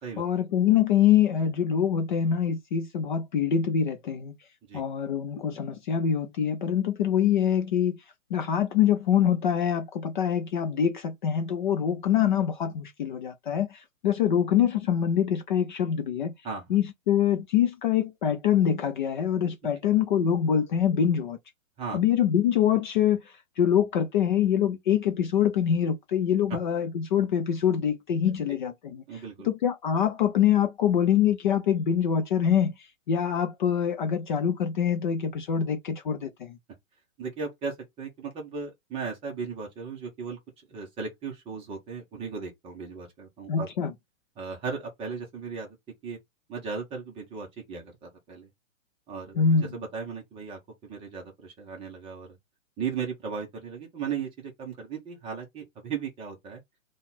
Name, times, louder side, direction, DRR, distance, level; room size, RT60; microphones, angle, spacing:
voice 1, 0.2-4.3 4.7-8.0 8.3-16.3 16.7-21.4 21.9-29.0 29.4-32.7 33.1-36.6 43.5-43.9 49.4-49.7, left 9 dB, 35° left, 0.6 m, -24 dB
voice 2, 16.4-16.8 21.8-22.0 29.1-29.5 37.2-40.4 40.7-43.7 44.4-45.8 46.0-46.2 46.5-48.5 49.1-52.4 52.8-56.6, right 5 dB, 15° right, 1.0 m, -36 dB
3.9 x 2.4 x 4.1 m
hypercardioid pair, 150°, 40 cm